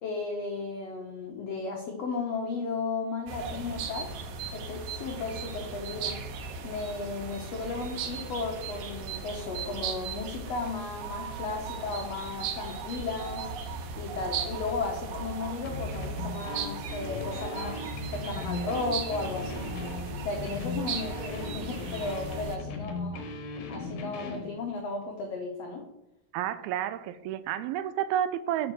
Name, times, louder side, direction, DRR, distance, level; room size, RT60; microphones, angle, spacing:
voice 1, 0.0-4.1 4.5-6.2 6.6-13.5 14.0-17.8 18.1-19.6 20.2-23.2 23.7-25.8, left 3 dB, 85° left, 2 dB, 1.4 m, -35 dB
sound 1, 3.3-22.6, right 5 dB, 70° right, 2.3 m, -37 dB
sound 2, 15.6-24.5, left 3 dB, 70° left, 2.8 m, -38 dB
voice 2, 26.3-28.7, right 11 dB, 85° right, 13 dB, 2.5 m, -30 dB
7.7 x 5.3 x 6.1 m, 0.90 s
omnidirectional pair, 4.3 m